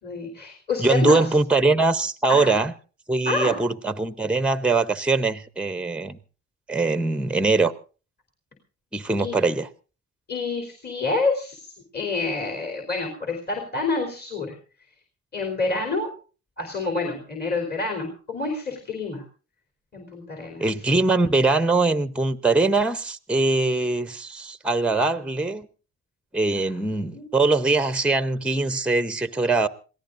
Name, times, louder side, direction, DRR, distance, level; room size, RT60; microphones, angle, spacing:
voice 1, 0.0-1.2 2.3-2.6 3.3-3.6 9.2-9.4 10.3-14.6 15.3-16.1 16.6-19.2 19.9-20.7 27.1-27.3, left 3 dB, 35° left, 3.6 m, -28 dB
voice 2, 0.8-2.7 3.1-6.2 6.7-7.7 8.9-9.7 20.6-25.7 26.3-29.7, right 3 dB, 5° right, 0.7 m, -22 dB
27.0 x 17.0 x 2.6 m
cardioid pair, 90°, 30 cm